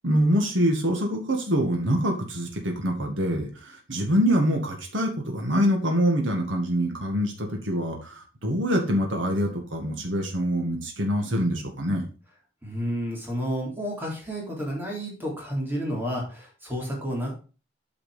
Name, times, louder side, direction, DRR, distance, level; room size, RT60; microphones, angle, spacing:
voice 1, 0.0-12.0, equal, 80° right, 2 dB, 1.9 m, -25 dB
voice 2, 12.6-17.3, equal, 10° right, -3 dB, 3.6 m, -31 dB
8.8 x 5.1 x 5.0 m, 0.35 s
head